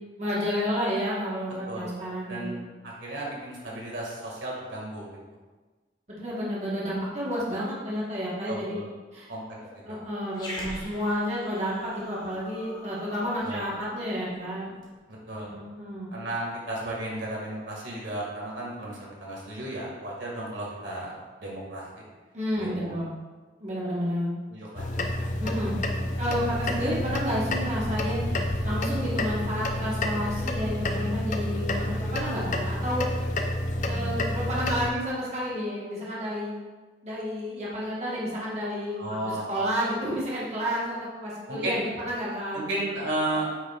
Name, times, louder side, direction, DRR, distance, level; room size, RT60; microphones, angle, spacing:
voice 1, 0.2-2.5 6.1-8.7 9.1-9.2 9.6-14.7 15.4-16.1 22.3-23.1 23.6-24.3 25.4-25.7 26.2-28.2 28.6-31.9 32.1-33.1 33.9-36.6 37.0-39.0 39.5-42.8, equal, 35° right, -7 dB, 1.3 m, -30 dB
voice 2, 2.3-5.1 8.5-8.9 9.3-9.4 9.7-10.0 13.4-13.6 15.3-15.5 16.1-21.1 21.4-22.0 22.6-22.9 24.5-24.9 26.8-26.9 39.0-39.4 41.5-41.9 42.5-43.5, right 1 dB, 85° right, -4 dB, 1.9 m, -34 dB
Growling, 10.3-14.9, left 1 dB, 25° left, 1.0 m, -43 dB
sound 1, 24.8-34.9, left 1 dB, 40° left, 0.5 m, -29 dB
8.5 x 5.7 x 2.4 m, 1.3 s
head